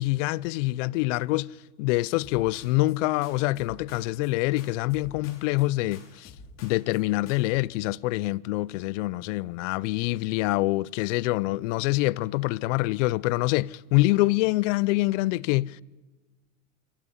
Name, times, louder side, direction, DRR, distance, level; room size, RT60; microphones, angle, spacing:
voice 1, 0.0-1.5 1.8-6.3 6.6-15.8, left 20 dB, 60° left, 0.7 m, -25 dB
sound 1, 2.2-3.0 3.2-4.3 4.6-5.7 5.9-7.0 7.3-7.6, left 4 dB, 40° left, 5.8 m, -49 dB
26.5 x 24.5 x 5.5 m
supercardioid pair, 130°, 42 cm